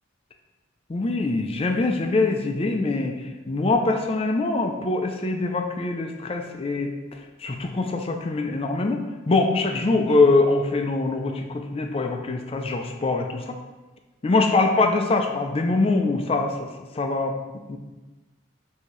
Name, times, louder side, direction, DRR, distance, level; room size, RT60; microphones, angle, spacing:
voice 1, 0.9-3.2 3.5-6.9 7.4-13.6 14.2-16.7 16.9-17.3 17.7-17.8, left 3 dB, 30° left, 4 dB, 0.4 m, -23 dB
5.9 x 2.8 x 3.1 m, 1.2 s
head